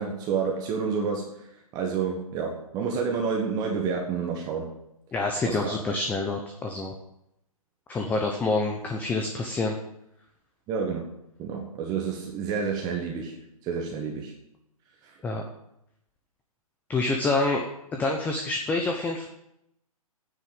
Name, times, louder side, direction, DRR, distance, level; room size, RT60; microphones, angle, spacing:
voice 1, 0.0-4.7 5.5-5.7 10.7-11.0 11.4-14.3 15.0-15.2, right 5 dB, 20° right, 1 dB, 1.4 m, -29 dB
voice 2, 5.1-6.9 7.9-9.8 15.2-15.4 16.9-17.7 17.9-19.3, left 3 dB, 10° left, 3 dB, 0.8 m, -27 dB
9.7 x 8.3 x 8.8 m, 0.82 s
hypercardioid pair, 145°, 19 cm